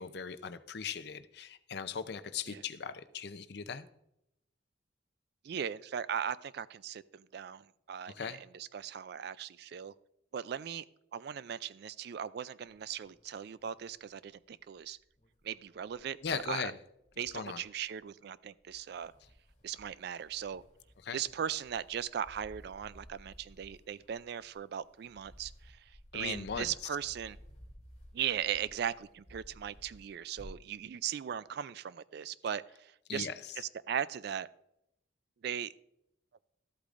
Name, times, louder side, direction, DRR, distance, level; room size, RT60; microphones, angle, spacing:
voice 1, 0.0-3.9 8.1-8.4 16.2-16.8 17.3-17.6 21.0-21.2 26.1-26.7 33.1-33.3, left 6 dB, 60° left, 12 dB, 0.5 m, -39 dB
voice 2, 5.4-9.9 10.3-10.8 11.1-15.0 15.4-16.6 17.2-19.1 19.6-20.6 21.1-25.8 26.1-27.4 28.1-33.3 33.6-34.5 35.4-35.7, right 9 dB, 55° right, 18 dB, 0.3 m, -38 dB
sound 1, 12.6-14.8 15.0-16.6 17.0-18.0 18.6-30.8, equal, 35° left, 2.4 m, -57 dB
13.5 x 8.3 x 2.5 m, 0.81 s
head